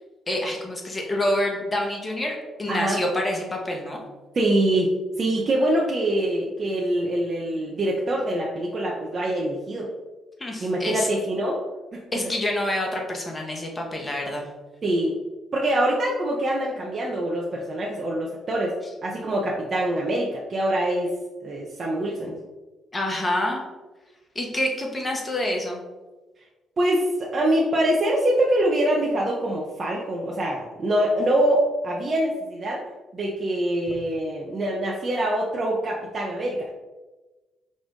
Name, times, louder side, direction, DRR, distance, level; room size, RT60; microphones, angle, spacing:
voice 1, 0.3-4.0 10.4-11.1 12.1-14.5 22.9-23.6 24.3-25.8, left 1 dB, 30° left, 1 dB, 1.2 m, -27 dB
voice 2, 2.7-3.0 4.3-9.9 10.6-11.6 14.8-15.1 15.5-18.8 19.0-21.1 21.4-22.4 26.8-32.8 33.1-36.7, right 1 dB, 45° right, -3 dB, 0.7 m, -24 dB
5.1 x 2.5 x 3.6 m, 1.2 s
hypercardioid pair, 45°, 0 cm